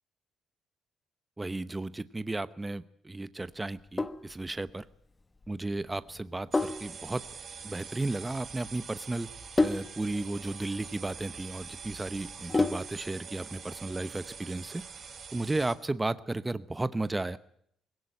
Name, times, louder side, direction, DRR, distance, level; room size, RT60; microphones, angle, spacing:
voice 1, 1.4-4.8 5.5-7.2 7.6-9.3 9.6-14.8 15.3-17.4, right 2 dB, 15° right, 14 dB, 0.9 m, -34 dB
Sink (filling or washing), 3.7-13.1, left 3 dB, 20° left, 1.3 m, -33 dB
sound 1, 6.5-15.8, right 6 dB, 50° right, 2.9 m, -45 dB
20.0 x 17.5 x 9.8 m, 0.69 s
cardioid pair, 90°, 0 cm